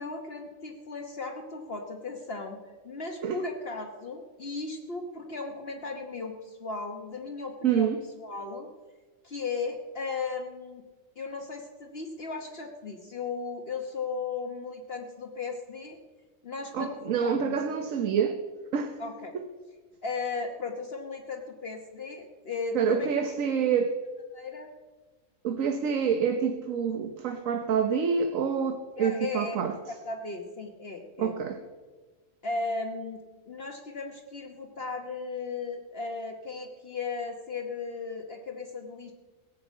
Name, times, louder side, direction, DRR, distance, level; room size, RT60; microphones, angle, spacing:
voice 1, 0.0-2.6 2.8-7.9 8.2-8.7 9.2-10.8 11.2-16.0 16.4-17.6 19.0-19.3 20.0-23.2 24.3-24.7 29.0-29.6 29.9-31.3 32.4-33.2 33.5-39.1, left 4 dB, 50° left, 3 dB, 1.4 m, -36 dB
voice 2, 7.6-8.0 16.7-18.4 18.7-19.0 19.3-19.5 22.7-23.9 25.4-29.8 31.2-31.6, right 7 dB, 80° right, 7 dB, 1.3 m, -27 dB
17.0 x 7.2 x 8.2 m, 1.3 s
omnidirectional pair, 1.4 m